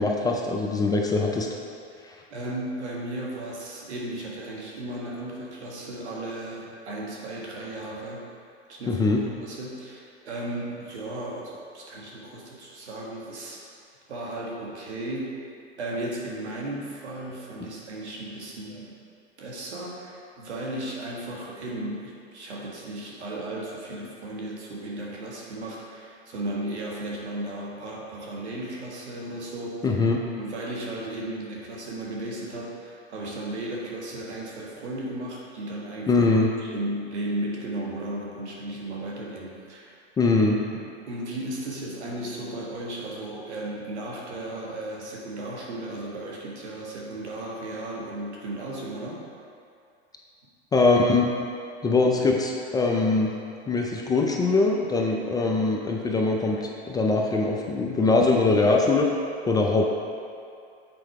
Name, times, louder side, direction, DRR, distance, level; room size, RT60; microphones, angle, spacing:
voice 1, 0.0-1.5 2.0-2.1 8.9-9.2 29.8-30.2 36.1-36.5 40.2-40.6 50.7-51.3 51.8-53.3 53.7-59.1 59.5-59.8, left 3 dB, 10° left, 0 dB, 0.4 m, -22 dB
voice 2, 2.3-8.2 8.7-9.0 9.4-13.6 14.1-15.3 15.8-18.9 19.4-30.0 30.4-36.3 36.6-40.0 40.7-49.2, right 1 dB, 85° right, -3 dB, 1.8 m, -35 dB
7.8 x 4.4 x 4.7 m, 2.4 s
hypercardioid pair, 120°, 33 cm